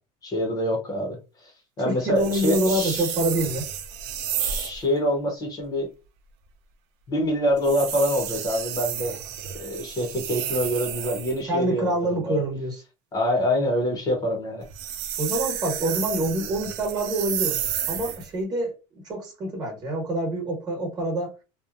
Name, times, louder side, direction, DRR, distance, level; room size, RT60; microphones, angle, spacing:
voice 1, 0.2-3.1 4.4-5.9 7.1-9.2 9.5-12.4 13.1-14.6, equal, 25° left, 0.7 m, -26 dB
voice 2, 1.8-3.6 11.4-12.8 15.2-17.6 17.9-18.7 19.0-21.3, right 1 dB, 30° right, 1.1 m, -26 dB
sound 1, 2.2-4.8 7.6-11.4 14.6-18.3, right 9 dB, 90° right, 0.5 m, -31 dB
2.8 x 2.1 x 2.4 m
cardioid pair, 165°, 15 cm